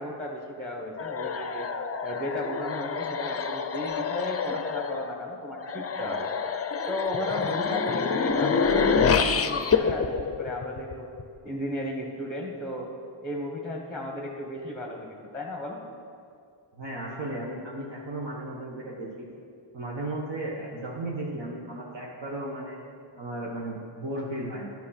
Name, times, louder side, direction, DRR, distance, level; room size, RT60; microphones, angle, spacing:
voice 1, 0.0-1.7 2.0-6.3 6.9-11.1 11.4-12.9 13.2-15.1 15.3-15.8, left 1 dB, ahead, 0 dB, 1.1 m, -34 dB
sound 1, 1.0-11.2, left 5 dB, 30° left, 0.5 m, -27 dB
voice 2, 16.8-19.3 19.7-22.8 23.2-24.7, right 1 dB, 55° right, -4 dB, 1.3 m, -35 dB
9.6 x 6.0 x 5.8 m, 2.4 s
cardioid pair, 75°, 49 cm